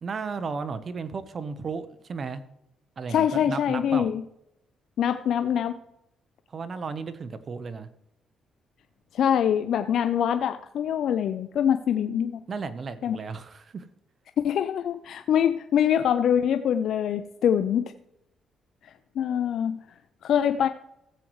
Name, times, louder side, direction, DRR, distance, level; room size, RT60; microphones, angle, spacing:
voice 1, 0.0-2.4 3.0-4.1 6.5-7.9 12.5-13.9, right 5 dB, 45° right, 12 dB, 0.9 m, -34 dB
voice 2, 3.1-4.2 5.0-5.8 9.1-12.4 13.0-13.2 14.4-17.9 18.8-19.8 20.2-20.7, left 9 dB, 70° left, 10 dB, 0.5 m, -24 dB
15.5 x 7.7 x 3.1 m, 0.85 s
cardioid pair, 90°, 0 cm